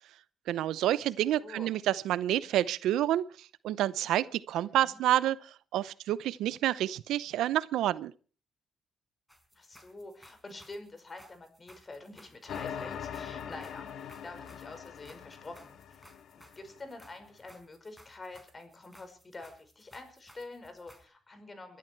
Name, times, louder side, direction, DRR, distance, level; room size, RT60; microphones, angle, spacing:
voice 1, 0.5-8.1, right 13 dB, 85° right, 0.7 m, -29 dB
voice 2, 1.4-1.7 4.6-5.0 9.5-16.0 16.3-21.8, left 2 dB, 30° left, 5.5 m, -47 dB
sound 1, 9.3-21.0, equal, 5° left, 5.1 m, -59 dB
sound 2, 12.5-16.9, left 8 dB, 70° left, 2.0 m, -42 dB
22.5 x 12.5 x 4.6 m
cardioid pair, 90°, 0 cm